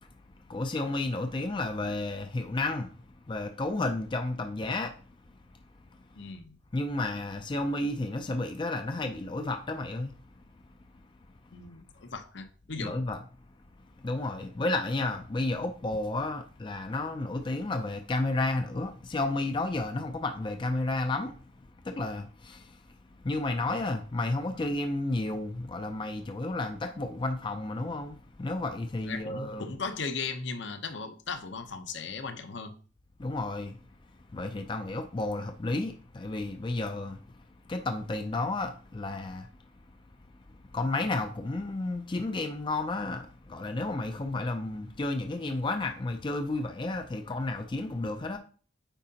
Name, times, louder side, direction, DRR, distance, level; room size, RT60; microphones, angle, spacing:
voice 1, 0.5-3.0 3.3-5.0 6.7-10.1 12.8-13.2 14.0-21.3 21.8-22.8 23.2-29.7 33.2-33.8 34.3-39.5 40.5-48.4, left 2 dB, 25° left, 0.4 m, -32 dB
voice 2, 6.2-6.6 11.5-13.0 29.0-32.7, left 4 dB, 65° left, 0.8 m, -37 dB
8.9 x 4.7 x 2.8 m
head